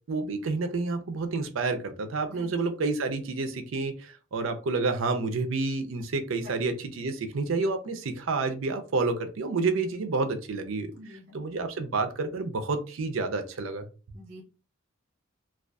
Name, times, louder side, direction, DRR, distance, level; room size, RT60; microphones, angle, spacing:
voice 1, 0.1-10.9 11.3-13.9, right 3 dB, 75° right, 0.5 m, -29 dB
voice 2, 10.9-11.4 14.1-14.4, equal, 50° right, 0.9 m, -46 dB
2.5 x 2.3 x 2.3 m
head